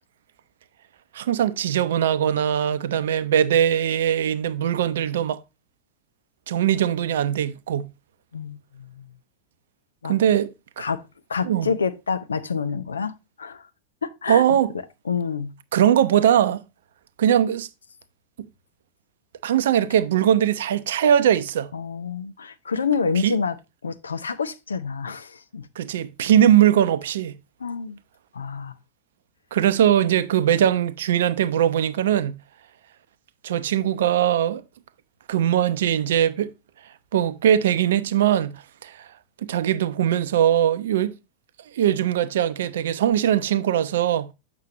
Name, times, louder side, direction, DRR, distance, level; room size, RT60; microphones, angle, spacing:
voice 1, 1.1-5.4 6.5-7.9 10.1-10.8 11.4-11.7 14.3-14.7 15.7-16.6 17.2-17.7 19.4-21.7 23.2-23.3 25.8-27.3 29.5-32.4 33.4-34.6 35.3-36.5 37.1-39.1 39.4-41.1 41.7-44.3, right 10 dB, 60° right, 0.6 m, -21 dB
voice 2, 8.3-9.1 10.0-10.2 10.8-11.0 11.3-13.7 14.0-14.4 15.1-15.5 21.7-23.6 23.8-25.7 27.6-28.0 28.3-28.7, left 5 dB, 70° left, 0.5 m, -28 dB
7.4 x 6.0 x 2.8 m
figure-of-eight pair, 90°, 0 cm